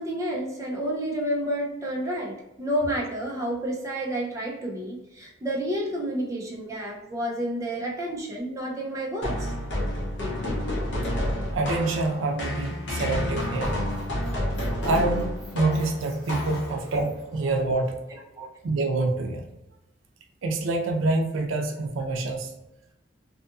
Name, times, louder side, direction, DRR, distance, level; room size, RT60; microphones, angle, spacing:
voice 1, 0.0-9.5 18.4-18.5, right 1 dB, 15° right, -3 dB, 0.5 m, -30 dB
sound 1, 9.2-17.0, left 1 dB, 65° left, 0.6 m, -29 dB
voice 2, 11.5-13.9 14.8-18.0 18.6-19.5 20.4-22.5, right 2 dB, 85° right, 3 dB, 0.4 m, -26 dB
Squeak, 13.3-17.4, equal, ahead, 1.1 m, -53 dB
2.7 x 2.5 x 2.3 m, 0.90 s
head